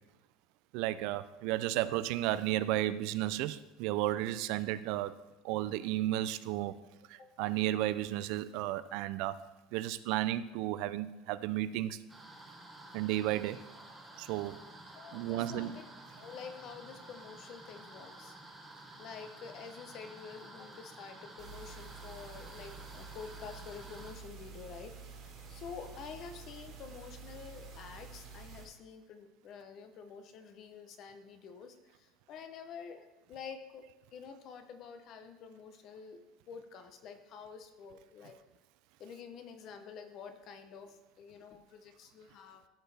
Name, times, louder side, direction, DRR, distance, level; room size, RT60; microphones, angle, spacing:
voice 1, 0.7-5.2 5.4-6.7 7.1-9.4 9.7-12.0 12.9-13.6 14.2-14.6 15.1-15.7, right 14 dB, 60° right, 0.4 m, -33 dB
sound 1, 12.1-24.1, right 2 dB, 5° right, 1.0 m, -52 dB
voice 2, 14.8-15.9 16.2-18.4 19.0-38.4 39.0-42.7, left 6 dB, 40° left, 0.7 m, -49 dB
sound 2, 21.4-28.7, right 5 dB, 40° right, 2.0 m, -49 dB
13.5 x 4.5 x 3.4 m
cardioid pair, 165°, 0 cm